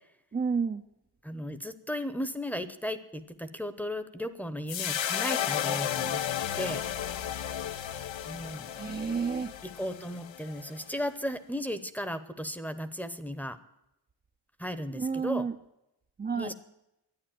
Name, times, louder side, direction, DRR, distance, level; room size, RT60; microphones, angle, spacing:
voice 1, 0.3-0.8 8.7-9.5 14.9-15.6 16.2-16.5, right 5 dB, 20° right, 6 dB, 0.4 m, -30 dB
voice 2, 1.2-6.2 6.6-6.9 8.2-8.7 9.6-13.6 14.6-15.4 16.4-16.5, equal, 5° left, 12 dB, 0.8 m, -35 dB
sound 1, 4.7-11.1, left 10 dB, 85° left, 0.8 m, -33 dB
12.0 x 9.6 x 8.8 m, 0.85 s
wide cardioid pair, 150°, 44 cm